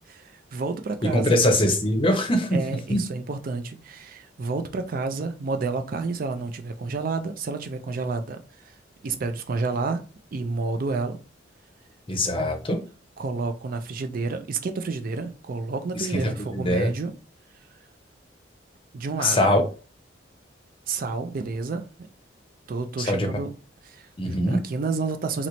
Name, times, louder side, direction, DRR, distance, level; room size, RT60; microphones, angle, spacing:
voice 1, 0.0-1.4 2.5-8.4 8.6-8.7 9.0-10.0 10.3-11.2 13.2-17.1 18.9-19.4 20.9-21.9 22.7-23.5 23.8-25.5, right 4 dB, 45° right, 0.4 m, -30 dB
voice 2, 1.1-2.6 2.9-3.0 12.1-12.8 15.9-16.2 16.5-16.9 19.2-19.6 23.0-23.3 24.2-24.6, left 1 dB, 30° left, 0.7 m, -22 dB
2.9 x 2.0 x 3.8 m
head